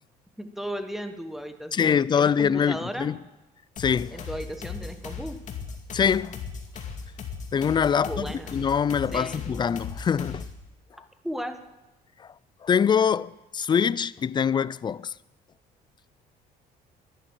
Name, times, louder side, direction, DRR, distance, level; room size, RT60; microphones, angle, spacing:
voice 1, 0.4-3.1 4.1-5.4 8.1-8.6 9.1-9.5 11.2-11.6, equal, ahead, 1.2 m, -35 dB
voice 2, 1.7-3.2 3.8-4.2 5.9-6.4 7.5-8.3 8.5-10.5 12.2-12.3 12.6-15.1, left 7 dB, 25° left, 0.4 m, -24 dB
sound 1, 3.8-10.6, left 5 dB, 45° left, 2.3 m, -38 dB
11.0 x 11.0 x 9.0 m
cardioid pair, 110°, 17 cm